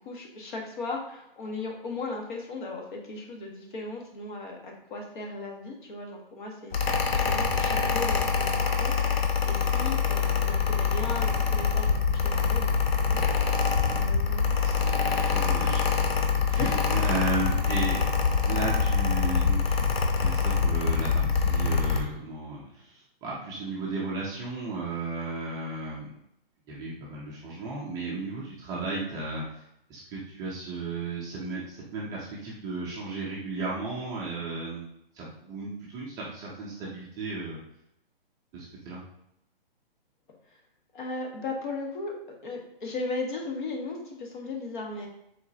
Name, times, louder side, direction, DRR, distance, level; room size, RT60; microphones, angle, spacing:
voice 1, 0.0-13.2 13.9-14.6 16.5-16.7 40.5-40.6 40.9-45.1, left 3 dB, 55° left, 1 dB, 1.3 m, -37 dB
Mechanical fan, 6.7-22.0, left 5 dB, 90° left, 0.8 m, -25 dB
voice 2, 14.6-16.0 16.4-18.0 18.5-19.8 20.2-26.1 26.7-29.6 29.9-34.9 35.1-37.6 38.5-39.0, right 3 dB, 10° right, -5 dB, 0.4 m, -34 dB
4.6 x 4.0 x 2.7 m, 0.80 s
hypercardioid pair, 145°, 29 cm